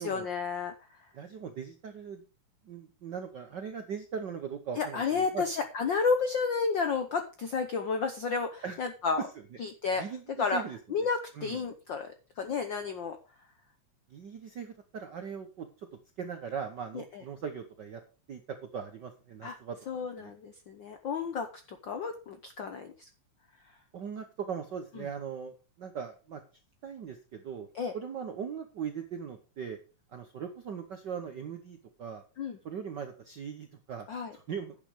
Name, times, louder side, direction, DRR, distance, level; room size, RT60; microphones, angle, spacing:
voice 1, 0.0-1.0 4.8-9.2 9.6-10.0 10.4-10.6 10.9-13.2 17.1-17.2 19.4-19.6 19.9-23.1 27.7-27.9 32.4-32.6 34.1-34.3, left 5 dB, 70° left, 7 dB, 1.1 m, -31 dB
voice 2, 1.1-2.2 2.6-5.4 8.6-8.8 10.0-10.8 11.3-11.6 14.1-15.9 16.2-18.0 18.3-18.4 18.7-19.8 20.2-20.3 23.9-26.4 26.8-27.7 27.9-29.8 30.1-32.2 32.6-34.1 34.3-34.7, right 7 dB, 70° right, 7 dB, 1.0 m, -39 dB
10.5 x 7.3 x 5.0 m, 0.34 s
omnidirectional pair, 3.4 m